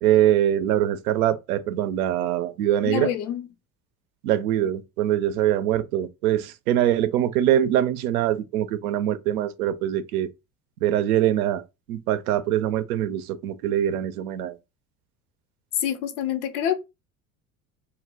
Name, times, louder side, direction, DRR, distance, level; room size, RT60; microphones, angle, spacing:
voice 1, 0.0-3.1 4.2-10.3 10.8-14.6, right 11 dB, 65° right, 0.5 m, -23 dB
voice 2, 2.8-3.4 15.8-16.8, left 10 dB, 70° left, 0.7 m, -26 dB
2.1 x 2.1 x 3.7 m
figure-of-eight pair, 65°, 47 cm